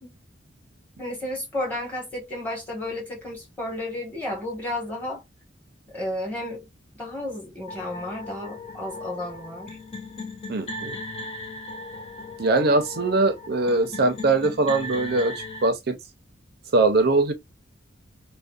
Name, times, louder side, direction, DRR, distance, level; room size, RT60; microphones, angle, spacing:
voice 1, 1.0-5.2 5.9-6.7 6.9-9.8, left 1 dB, 10° left, 1.2 m, -32 dB
sound 1, 7.7-15.7, left 2 dB, 30° left, 0.4 m, -37 dB
voice 2, 10.5-11.0 12.4-16.0 16.7-17.3, right 2 dB, 50° right, 0.5 m, -22 dB
2.5 x 2.1 x 2.3 m
head